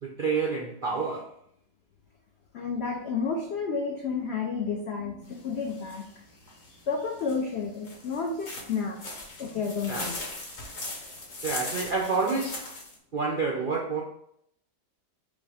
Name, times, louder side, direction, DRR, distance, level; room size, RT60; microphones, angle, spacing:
voice 1, 0.0-1.3 9.9-10.1 11.4-12.7 13.1-14.0, right 4 dB, 70° right, -2 dB, 0.5 m, -28 dB
voice 2, 2.5-6.0 6.9-9.0 9.4-10.3, left 5 dB, 75° left, 1 dB, 0.6 m, -31 dB
sound 1, 5.2-12.9, left 2 dB, 45° left, 1.2 m, -39 dB
5.3 x 2.0 x 4.8 m, 0.72 s
omnidirectional pair, 1.8 m